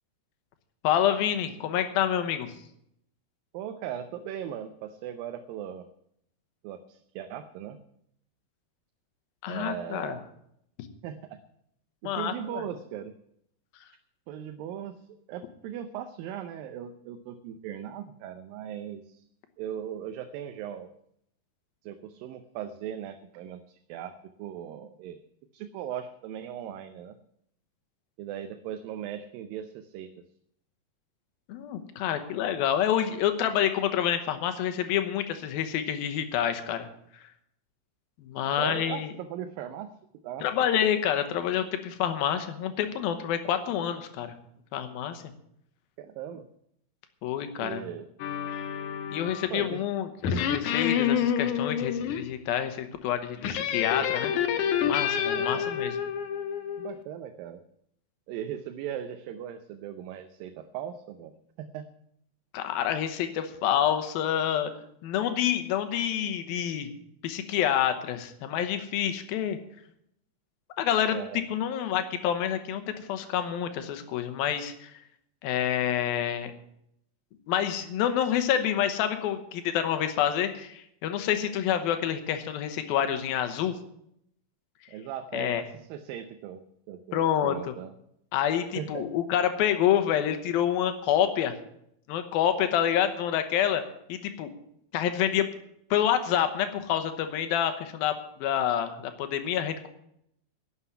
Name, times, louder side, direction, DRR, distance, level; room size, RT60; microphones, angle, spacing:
voice 1, 0.8-2.5 9.4-10.2 12.0-12.6 31.5-36.9 38.2-39.1 40.4-44.3 44.7-45.2 47.2-47.8 49.1-54.3 54.8-56.0 62.5-64.7 65.0-66.9 67.2-69.6 70.8-71.2 71.5-74.9 75.4-76.5 77.5-83.7 85.3-85.6 87.1-87.7 88.3-91.5 92.1-93.8 94.1-94.5 94.9-95.5 95.9-99.9, left 10 dB, 85° left, 8 dB, 2.9 m, -27 dB
voice 2, 3.5-5.9 6.6-7.8 9.5-10.2 11.0-11.4 12.0-13.2 14.3-19.3 19.6-20.9 21.8-25.2 25.5-27.2 28.2-30.2 38.5-40.0 40.2-40.7 46.0-46.5 47.6-48.1 49.5-49.8 55.3-55.7 56.8-57.6 58.3-61.9 71.1-71.4 84.9-87.9 88.8-89.1, right 9 dB, 80° right, 9 dB, 2.4 m, -38 dB
sound 1, 48.2-49.6 50.2-52.2 53.4-56.9, left 8 dB, 65° left, 2.2 m, -28 dB
11.5 x 7.9 x 9.5 m, 0.74 s
omnidirectional pair, 4.2 m